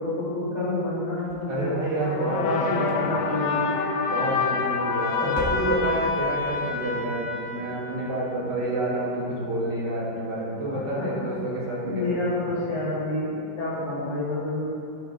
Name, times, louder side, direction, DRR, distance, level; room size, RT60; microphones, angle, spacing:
voice 1, 0.0-1.8 2.3-3.7 5.2-5.5 10.6-11.3 11.8-14.6, left 2 dB, 60° left, -10 dB, 2.4 m, -29 dB
sound 1, 1.2-2.3 2.8-3.5 4.4-4.9 5.2-6.2, left 1 dB, 15° right, 1.4 m, -38 dB
voice 2, 1.5-3.1 4.1-12.5, right 1 dB, 75° right, -6 dB, 2.4 m, -29 dB
sound 2, 2.0-8.4, left 5 dB, 90° left, 1.4 m, -28 dB
12.0 x 5.9 x 3.8 m, 2.6 s
omnidirectional pair, 1.9 m